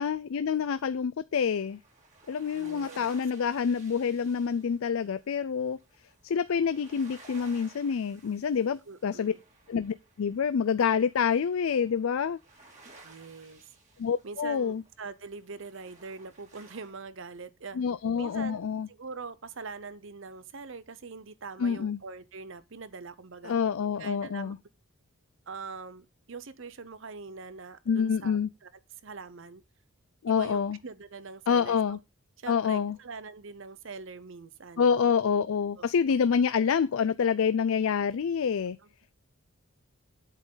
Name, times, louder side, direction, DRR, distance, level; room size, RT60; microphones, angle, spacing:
voice 1, 0.0-1.8 2.3-5.8 6.2-9.3 9.7-12.4 14.0-14.8 17.8-18.9 21.6-22.0 23.4-24.6 27.9-28.5 30.2-30.8 31.5-32.0 32.5-33.0 34.8-38.8, left 6 dB, 70° left, 0.4 m, -27 dB
sound 1, 1.5-16.9, right 3 dB, 35° right, 2.6 m, -56 dB
voice 2, 2.5-3.1 8.9-9.4 13.0-13.6 14.2-17.8 18.2-23.6 24.0-24.5 25.5-28.7 29.0-29.6 30.3-32.0 32.4-35.1 35.8-35.9 38.8-38.9, right 4 dB, 60° right, 0.7 m, -43 dB
8.2 x 7.5 x 3.9 m
head